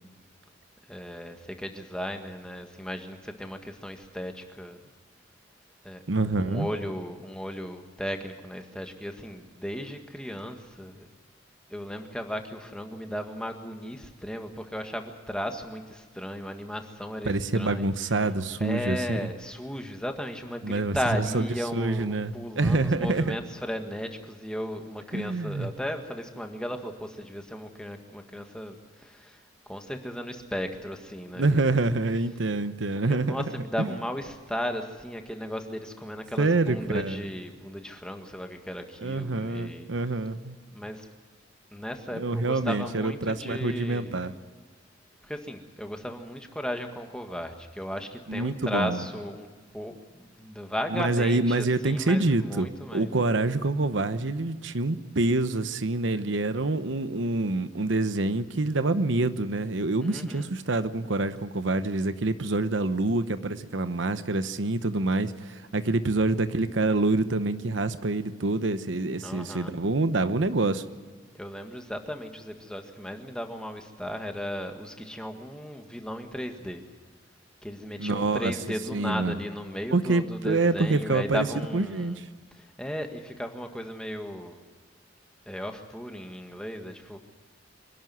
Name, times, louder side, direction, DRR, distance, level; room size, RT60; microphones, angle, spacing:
voice 1, 0.9-4.9 5.8-6.0 6.5-11.1 11.7-17.9 18.6-29.4 29.7-31.9 33.1-39.9 40.7-41.1 41.7-44.4 45.2-49.5 49.7-53.1 60.0-60.5 69.2-69.8 71.3-76.8 77.6-82.2 82.5-84.6 85.4-87.2, equal, 5° left, 4 dB, 1.7 m, -35 dB
voice 2, 6.1-6.7 17.3-19.2 20.6-21.5 21.7-23.4 25.1-25.7 31.4-33.5 33.8-33.9 36.4-37.2 39.0-40.6 42.1-44.3 48.3-49.0 50.9-70.8 78.0-78.5 78.9-79.4 79.9-81.5 81.7-82.3, right 2 dB, 75° right, 11 dB, 0.9 m, -26 dB
25.5 x 12.0 x 9.4 m, 1.5 s
head